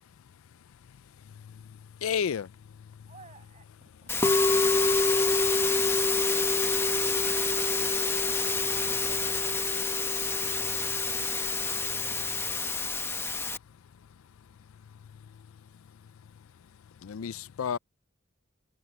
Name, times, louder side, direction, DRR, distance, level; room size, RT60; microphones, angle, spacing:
voice 1, 2.0-2.5 17.0-17.8, left 7 dB, 75° left, 0.4 m, -30 dB
voice 2, 3.1-6.1, right 4 dB, 35° right, 6.7 m, -58 dB
Musical instrument, 4.1-13.6, left 3 dB, 10° left, 1.0 m, -26 dB
voice 3, 7.1-8.4 9.0-10.1 10.9-11.2, right 3 dB, 70° right, 6.6 m, -52 dB
head